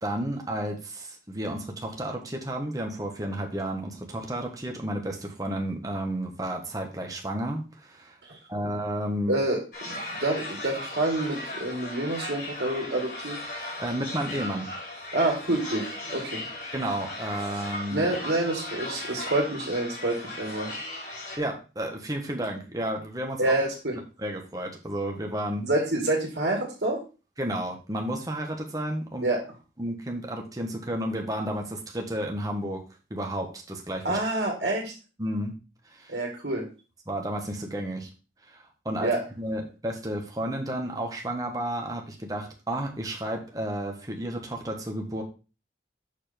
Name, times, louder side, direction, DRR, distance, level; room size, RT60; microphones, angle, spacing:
voice 1, 0.0-8.2 8.5-9.3 13.8-14.7 16.7-18.1 21.4-23.5 24.2-25.7 27.4-29.3 29.8-32.8 33.1-34.2 35.2-35.5 35.9-36.2 37.1-38.1 38.5-45.2, right 1 dB, 20° right, 2 dB, 1.3 m, -32 dB
voice 2, 9.3-13.4 15.1-16.4 17.9-20.7 23.4-24.0 25.6-27.0 29.2-29.4 34.0-34.9 36.1-36.6 39.0-39.2, right 2 dB, 70° right, -1 dB, 2.1 m, -27 dB
sound 1, 9.7-21.4, left 1 dB, 55° left, 3.2 m, -37 dB
6.8 x 4.2 x 5.2 m, 0.33 s
head